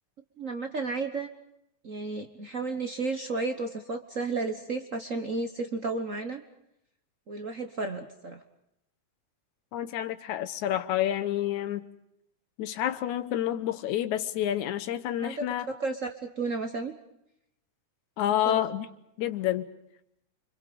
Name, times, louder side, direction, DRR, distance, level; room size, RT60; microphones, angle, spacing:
voice 1, 0.4-1.3 1.8-6.4 7.3-8.4 15.2-16.9 18.3-18.6, right 3 dB, 70° right, 0.7 m, -33 dB
voice 2, 9.7-11.9 12.6-15.7 18.2-18.9 19.2-19.7, left 12 dB, 80° left, 2.4 m, -29 dB
29.0 x 25.5 x 5.2 m
omnidirectional pair, 3.3 m